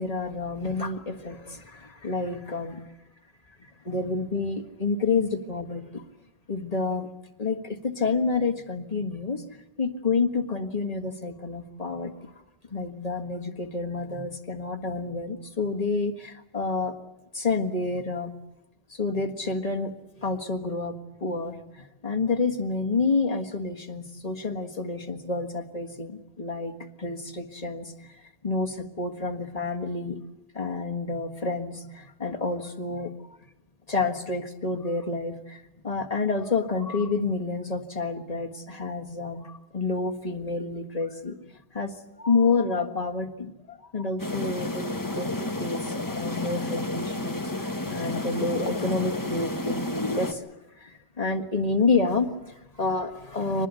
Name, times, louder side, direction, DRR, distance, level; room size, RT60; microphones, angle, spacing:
voice 1, 0.0-2.8 3.8-6.0 6.5-7.1 7.4-9.4 9.8-12.3 12.7-16.9 17.3-18.3 18.9-19.9 20.2-21.0 21.2-28.1 28.4-30.2 30.5-33.1 33.9-41.4 41.7-50.5 50.8-53.7, left 3 dB, 40° left, 3 dB, 1.8 m, -29 dB
sound 1, 44.2-50.3, left 2 dB, 20° left, 1.2 m, -31 dB
25.0 x 20.0 x 8.3 m, 0.93 s
omnidirectional pair, 1.0 m